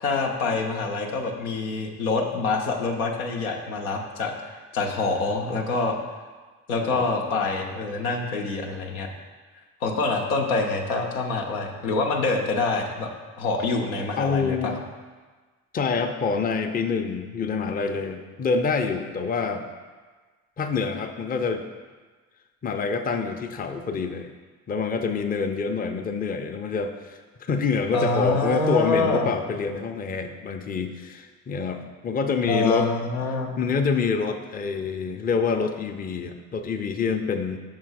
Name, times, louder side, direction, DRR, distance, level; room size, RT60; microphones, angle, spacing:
voice 1, 0.0-6.0 6.7-9.1 9.8-13.1 13.4-14.8 27.9-29.3 32.4-33.6, left 3 dB, 85° left, 1 dB, 0.7 m, -26 dB
voice 2, 14.2-14.8 15.7-19.6 20.6-21.6 22.6-24.3 24.7-32.9 33.6-37.6, left 5 dB, 20° left, 6 dB, 0.5 m, -26 dB
5.6 x 3.7 x 4.7 m, 1.4 s
hypercardioid pair, 45°, 42 cm